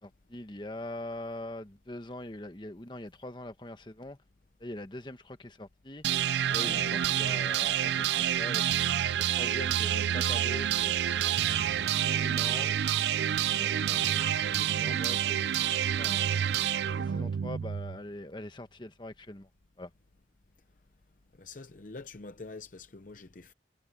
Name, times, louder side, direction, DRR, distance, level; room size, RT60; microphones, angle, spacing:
voice 1, 0.0-4.2 4.6-6.1 6.5-8.6 9.2-11.4 12.0-12.7 13.6-14.2 14.5-15.5 16.0-16.2 17.0-19.5 19.8-19.9, left 1 dB, 25° left, 1.3 m, -42 dB
sound 1, 6.0-18.0, right 10 dB, 80° right, 0.4 m, -28 dB
voice 2, 6.6-7.0 21.4-23.5, left 3 dB, 50° left, 0.7 m, -45 dB
head